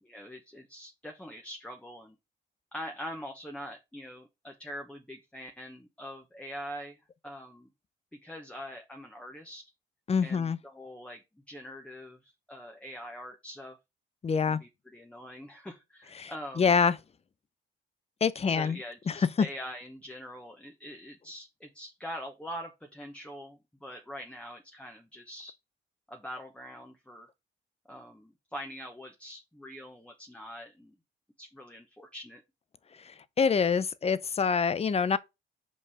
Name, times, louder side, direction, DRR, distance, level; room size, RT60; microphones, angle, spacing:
voice 1, 0.0-2.2 2.7-7.7 8.1-9.6 10.2-13.8 14.5-16.7 18.5-25.5 26.1-27.3 27.9-30.9 31.4-32.4, equal, 5° left, 1.2 m, -44 dB
voice 2, 10.1-10.6 14.2-14.6 16.2-16.3 16.6-16.9 18.2-18.8 19.1-19.5 33.4-35.2, left 5 dB, 30° left, 0.6 m, -25 dB
5.4 x 5.3 x 4.9 m
cardioid pair, 90°, 20 cm